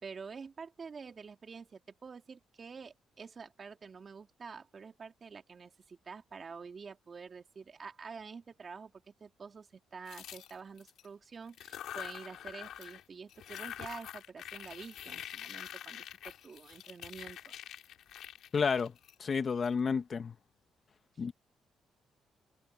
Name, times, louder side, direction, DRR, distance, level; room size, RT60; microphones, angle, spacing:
voice 1, 0.0-17.5, right 5 dB, 40° right, 3.2 m, -48 dB
sound 1, 10.1-11.1 11.5-13.0 13.3-19.7, left 11 dB, 75° left, 6.2 m, -46 dB
voice 2, 18.5-18.9 19.2-20.3 21.2-21.3, left 5 dB, 40° left, 1.4 m, -30 dB
cardioid pair, 90°, 0 cm